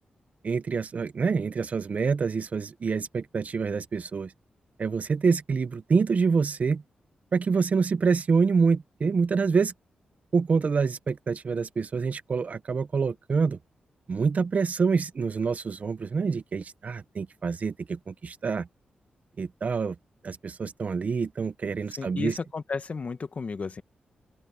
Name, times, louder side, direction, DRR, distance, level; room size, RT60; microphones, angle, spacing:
voice 1, 0.4-4.3 4.8-6.8 7.3-9.7 10.3-13.6 14.1-18.7 19.4-19.9 20.2-22.4, right 5 dB, 50° right, 1.1 m, -26 dB
voice 2, 21.9-23.8, left 4 dB, 45° left, 1.5 m, -33 dB
open air
cardioid pair, 85°, 3 cm